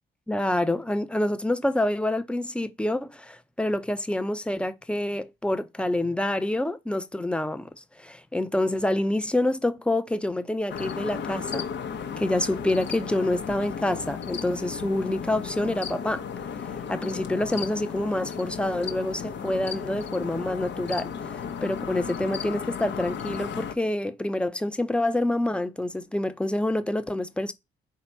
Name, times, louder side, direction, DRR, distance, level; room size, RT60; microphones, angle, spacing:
voice 1, 0.3-7.7 8.0-11.7 12.2-16.2 16.6-27.5, left 1 dB, 5° left, 0.6 m, -27 dB
sound 1, 10.7-23.7, left 7 dB, 60° left, 0.8 m, -34 dB
4.0 x 2.9 x 4.4 m
supercardioid pair, 60°, 21 cm